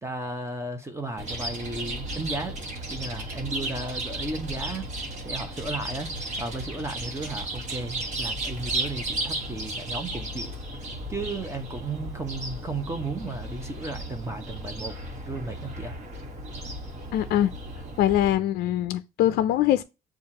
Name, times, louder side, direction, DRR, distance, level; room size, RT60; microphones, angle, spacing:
voice 1, 0.0-2.6 2.9-4.9 5.2-6.1 6.4-10.6 11.1-15.0 15.3-16.0, right 2 dB, 15° right, 0.9 m, -34 dB
Chirp tweet, 1.2-18.3, right 1 dB, 45° right, 1.3 m, -34 dB
voice 2, 17.1-17.5 18.0-19.8, left 12 dB, 70° left, 0.4 m, -23 dB
7.0 x 2.4 x 2.8 m
cardioid pair, 110°, 17 cm